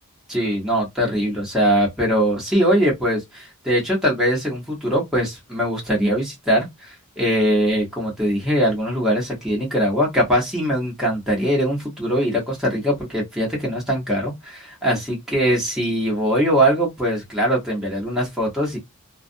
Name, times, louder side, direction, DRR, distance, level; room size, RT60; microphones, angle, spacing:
voice 1, 0.3-18.8, equal, ahead, 1.0 m, -21 dB
2.4 x 2.3 x 2.6 m
head